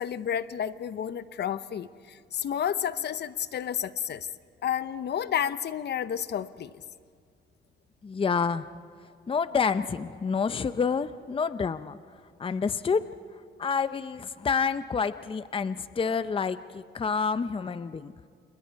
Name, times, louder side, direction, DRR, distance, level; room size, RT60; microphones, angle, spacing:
voice 1, 0.0-4.3 4.6-6.7, left 9 dB, 60° left, 14 dB, 0.8 m, -31 dB
voice 2, 8.0-8.7 9.3-12.0 12.4-13.1 13.6-18.1, left 5 dB, 25° left, 13 dB, 0.7 m, -28 dB
30.0 x 28.5 x 4.7 m, 2.1 s
cardioid pair, 90°, 20 cm